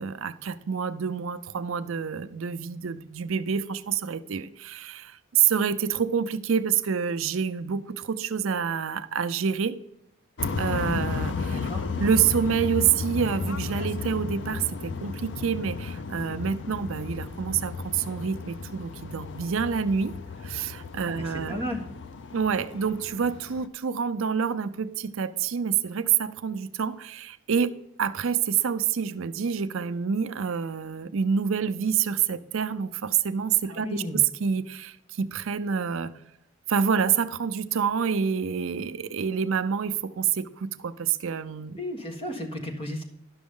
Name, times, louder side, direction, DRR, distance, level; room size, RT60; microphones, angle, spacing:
voice 1, 0.0-9.8 10.6-11.7 12.0-20.2 20.4-21.6 22.3-36.2 36.7-41.8, right 7 dB, 65° right, 12 dB, 0.5 m, -27 dB
sound 1, 10.4-23.7, left 4 dB, 55° left, 0.4 m, -34 dB
voice 2, 11.5-11.8 21.0-21.8 33.7-34.2 41.7-43.0, left 1 dB, 25° left, 1 dB, 1.5 m, -34 dB
11.5 x 6.1 x 3.7 m, 0.82 s
head